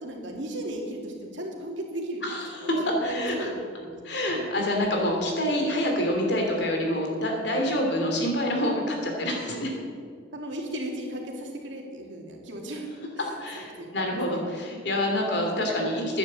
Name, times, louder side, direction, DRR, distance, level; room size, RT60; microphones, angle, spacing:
voice 1, 0.0-2.2 3.0-4.3 9.8-9.9 10.3-12.9 13.2-14.4, right 1 dB, 75° right, 0 dB, 2.5 m, -36 dB
voice 2, 2.2-2.7 3.0-3.5 4.0-9.8 13.4-16.2, left 1 dB, 60° left, 1 dB, 2.8 m, -27 dB
10.5 x 9.8 x 7.6 m, 2.1 s
head